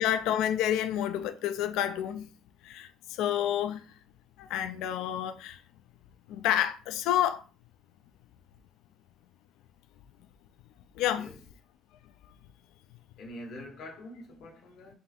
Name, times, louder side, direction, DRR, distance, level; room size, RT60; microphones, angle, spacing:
voice 1, 0.0-2.3 2.6-3.9 4.4-5.6 6.3-7.4 11.0-11.3, left 11 dB, 85° left, 0.3 m, -29 dB
voice 2, 11.0-11.4 13.2-15.0, left 1 dB, 60° left, 1.2 m, -45 dB
3.4 x 2.5 x 4.3 m
cardioid pair, 150°, 0 cm